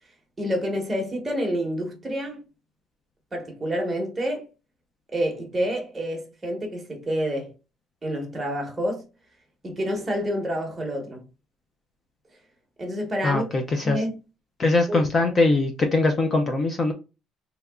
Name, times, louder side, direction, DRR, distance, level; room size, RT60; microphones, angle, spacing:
voice 1, 0.4-2.4 3.3-4.5 5.1-7.5 8.0-9.0 9.6-11.2 12.8-13.4 13.8-14.2 14.9-15.0, equal, 15° right, 1.0 m, -28 dB
voice 2, 13.2-14.0 14.6-16.9, left 2 dB, 25° left, 0.4 m, -22 dB
3.5 x 2.8 x 2.2 m
cardioid pair, 170°, 0 cm